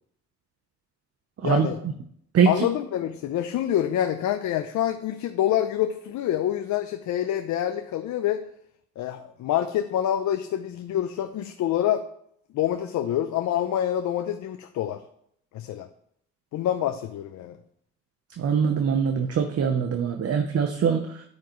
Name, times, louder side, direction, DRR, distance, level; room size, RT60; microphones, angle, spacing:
voice 1, 1.4-1.8 2.5-8.4 9.0-12.0 12.5-15.0 15.5-15.9 16.5-17.6, left 11 dB, 75° left, 7 dB, 0.6 m, -26 dB
voice 2, 2.3-2.6 18.4-21.2, right 6 dB, 55° right, 5 dB, 0.9 m, -23 dB
9.4 x 9.3 x 3.1 m, 0.70 s
cardioid pair, 90°, 30 cm